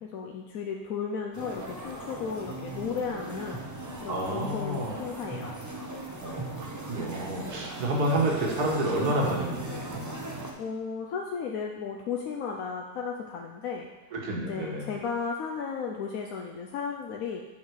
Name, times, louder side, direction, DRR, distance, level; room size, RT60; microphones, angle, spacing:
voice 1, 0.0-3.6 4.0-5.5 10.6-13.9 14.5-17.4, left 6 dB, 65° left, 0 dB, 1.0 m, -34 dB
sound 1, 1.3-10.5, right 2 dB, 25° right, 0.4 m, -38 dB
voice 2, 4.1-5.0 6.2-10.0 14.1-15.0, right 1 dB, 70° right, -2 dB, 1.9 m, -29 dB
7.9 x 5.6 x 4.7 m, 1.1 s
omnidirectional pair, 1.7 m